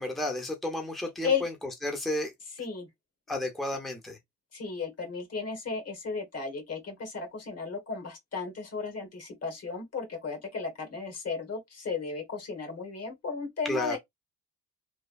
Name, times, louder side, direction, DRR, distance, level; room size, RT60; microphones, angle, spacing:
voice 1, 0.0-1.5 1.8-2.3 3.3-4.2 13.7-14.0, left 1 dB, ahead, 0.9 m, -32 dB
voice 2, 2.6-2.9 4.5-14.0, left 5 dB, 50° left, 1.4 m, -34 dB
3.2 x 2.2 x 2.4 m
cardioid pair, 80°, 32 cm